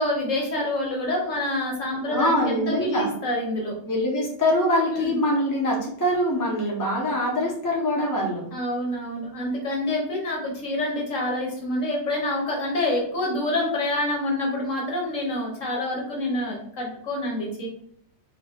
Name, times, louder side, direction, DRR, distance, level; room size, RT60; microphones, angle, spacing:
voice 1, 0.0-3.8 4.9-5.2 8.5-17.7, left 1 dB, 55° left, -2 dB, 1.0 m, -27 dB
voice 2, 2.1-3.1 3.8-8.4, left 1 dB, 30° left, -4 dB, 0.3 m, -24 dB
2.9 x 2.7 x 3.5 m, 0.65 s
omnidirectional pair, 1.9 m